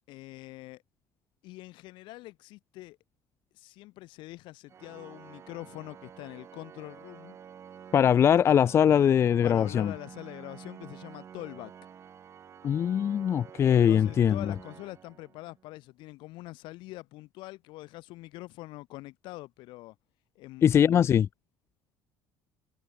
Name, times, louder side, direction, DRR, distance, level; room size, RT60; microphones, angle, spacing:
voice 1, 0.1-0.8 1.4-3.0 3.5-7.4 9.4-11.7 13.9-20.0 20.4-21.1, left 19 dB, 65° left, 5.8 m, -44 dB
Organ, 4.7-15.7, right 8 dB, 30° right, 5.2 m, -49 dB
voice 2, 7.9-9.9 12.6-14.5 20.6-21.3, left 9 dB, 30° left, 0.5 m, -22 dB
cardioid pair, 150°, 9 cm